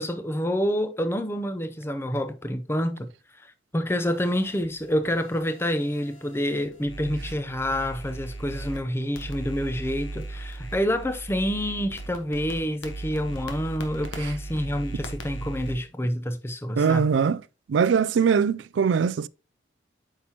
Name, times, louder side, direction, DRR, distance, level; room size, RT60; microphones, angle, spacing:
voice 1, 0.0-3.1 3.4-3.5 3.7-17.0, equal, 15° left, 0.6 m, -28 dB
sound 1, 4.1-8.8 9.1-15.8, right 2 dB, 85° left, 1.4 m, -38 dB
voice 2, 16.8-17.4 17.7-19.3, right 6 dB, 70° right, 0.3 m, -21 dB
8.4 x 5.7 x 2.9 m
head